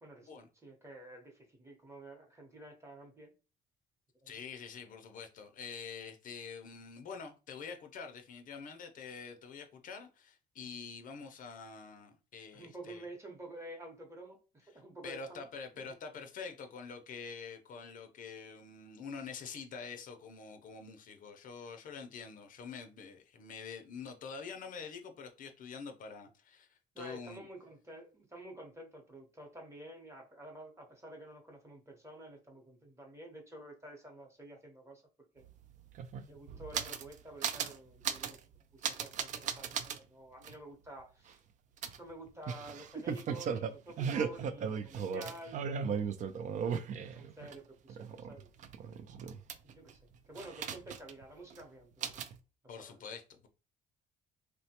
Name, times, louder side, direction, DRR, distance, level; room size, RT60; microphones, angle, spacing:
voice 1, 0.0-3.3 4.2-4.4 12.5-15.4 15.7-16.0 26.9-35.0 35.3-35.4 36.3-38.4 38.7-41.4 42.0-46.0 47.0-48.6 49.6-52.2 52.6-53.0, right 1 dB, 15° right, 0.9 m, -50 dB
voice 2, 4.3-13.0 15.0-27.4 52.7-53.5, left 5 dB, 50° left, 0.5 m, -46 dB
sound 1, 35.4-35.5 35.7-37.1 37.4-37.8 38.0-38.4 38.8-40.0 40.4-40.5 41.8-47.5 47.9-49.9 50.4-51.2 51.5-51.6 52.0-52.4, right 7 dB, 50° right, 0.4 m, -37 dB
3.1 x 2.1 x 2.8 m
cardioid pair, 110°, 17 cm